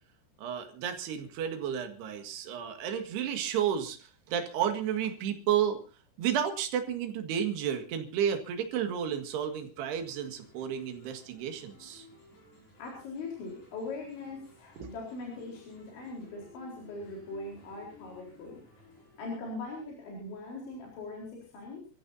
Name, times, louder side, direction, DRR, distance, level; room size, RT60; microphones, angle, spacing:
voice 1, 0.4-5.8 6.2-12.1 14.8-14.9, right 9 dB, 60° right, 6 dB, 3.6 m, -32 dB
sound 1, 9.9-19.2, left 3 dB, 45° left, 7.9 m, -57 dB
voice 2, 12.8-18.6 19.2-21.9, left 3 dB, 65° left, -1 dB, 6.3 m, -41 dB
28.0 x 15.0 x 2.7 m, 0.34 s
omnidirectional pair, 5.9 m